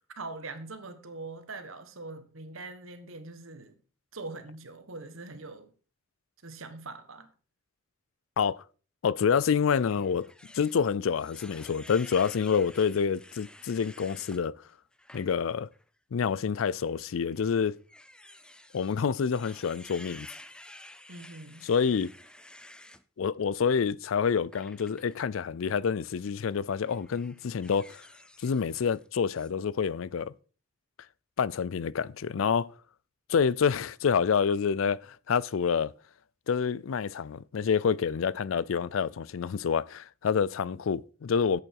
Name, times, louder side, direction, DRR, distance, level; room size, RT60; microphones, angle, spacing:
voice 1, 0.1-3.7 4.1-5.7 6.4-7.3 21.1-21.7, right 3 dB, 90° right, 1.5 m, -42 dB
voice 2, 9.0-14.6 15.1-15.7 16.1-17.8 18.7-20.3 21.6-22.1 23.2-28.0 28.4-30.3 31.4-32.7 33.3-35.9 36.5-41.6, left 6 dB, 80° left, 0.4 m, -27 dB
sound 1, 9.6-14.4 14.9-15.3 15.7-15.8 16.9-23.0 24.5-25.1 26.1-26.3 26.8-29.1 29.3-29.5, left 1 dB, 5° left, 0.5 m, -51 dB
10.5 x 8.2 x 4.6 m
head